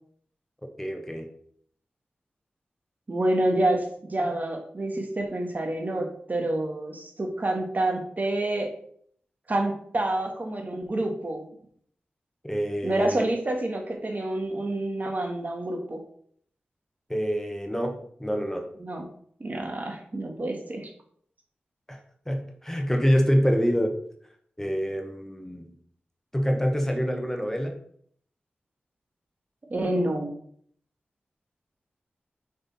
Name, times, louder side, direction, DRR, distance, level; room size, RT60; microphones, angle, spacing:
voice 1, 0.8-1.3 12.4-13.3 17.1-18.7 21.9-22.0 22.3-24.0 24.6-25.7 26.3-27.8, equal, 10° left, 4 dB, 1.1 m, -26 dB
voice 2, 3.1-8.7 9.5-11.4 12.8-16.0 18.8-19.0 19.4-20.9 29.7-30.3, right 1 dB, 45° right, 3 dB, 1.6 m, -28 dB
5.6 x 5.4 x 4.2 m, 0.62 s
cardioid pair, 45°, 4 cm